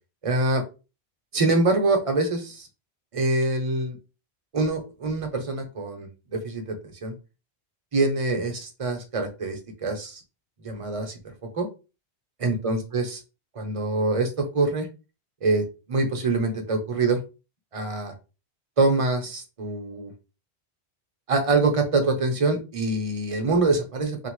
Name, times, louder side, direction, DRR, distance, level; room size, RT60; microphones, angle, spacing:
voice 1, 0.2-0.6 1.3-2.7 3.1-4.0 4.5-7.1 7.9-10.2 10.6-11.1 11.5-11.7 12.4-13.2 13.6-14.9 15.4-17.2 17.7-18.1 18.8-20.1 21.3-24.3, right 3 dB, 35° right, 4 dB, 0.7 m, -25 dB
2.8 x 2.5 x 3.0 m, 0.30 s
omnidirectional pair, 1.1 m